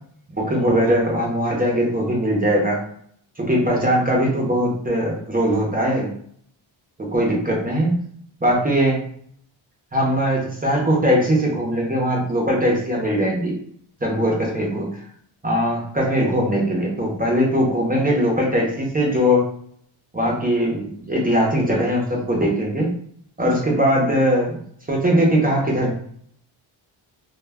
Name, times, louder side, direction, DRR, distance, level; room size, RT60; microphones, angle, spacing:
voice 1, 0.3-2.8 3.4-6.1 7.0-8.0 8.4-9.0 9.9-13.6 14.0-15.0 15.4-19.5 20.1-23.0 23.4-24.6 24.9-25.9, equal, 20° right, -2 dB, 0.5 m, -20 dB
2.1 x 2.1 x 3.3 m, 0.63 s
wide cardioid pair, 165°, 49 cm